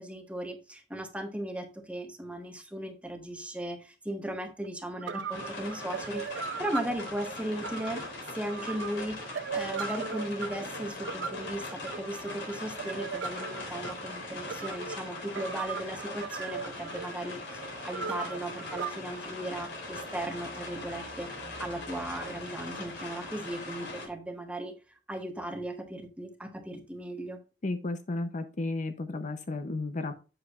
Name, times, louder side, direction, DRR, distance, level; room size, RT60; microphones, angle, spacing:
voice 1, 0.0-8.0 8.3-21.3 21.6-24.7 25.1-27.4, right 1 dB, 5° right, 0.9 m, -37 dB
sound 1, 4.6-4.7 5.0-18.9, right 5 dB, 80° right, 0.6 m, -39 dB
sound 2, 5.3-24.1, left 2 dB, 70° left, 3.6 m, -41 dB
voice 2, 27.6-30.1, left 2 dB, 45° left, 0.6 m, -33 dB
8.0 x 7.8 x 2.4 m
head